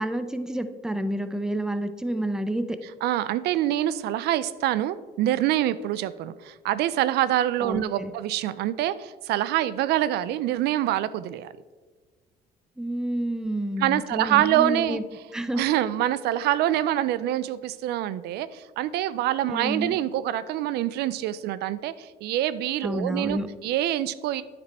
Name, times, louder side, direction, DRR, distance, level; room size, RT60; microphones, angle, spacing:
voice 1, 0.0-2.8 7.6-8.1 12.8-15.0 15.3-15.6 19.5-20.0 22.8-23.5, right 1 dB, 5° right, 10 dB, 0.5 m, -29 dB
voice 2, 3.0-11.5 13.8-15.0 15.5-24.4, right 13 dB, 75° right, 16 dB, 0.4 m, -25 dB
9.4 x 5.2 x 4.2 m, 1.4 s
cardioid pair, 110°, 17 cm